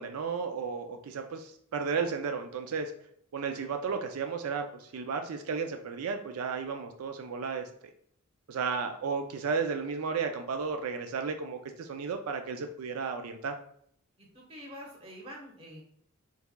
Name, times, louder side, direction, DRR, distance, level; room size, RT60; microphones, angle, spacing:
voice 1, 0.0-2.9 3.3-7.7 8.5-13.5, right 5 dB, 90° right, 6 dB, 0.4 m, -33 dB
voice 2, 14.2-15.8, equal, 25° right, -2 dB, 1.2 m, -46 dB
4.5 x 4.0 x 2.2 m, 0.67 s
head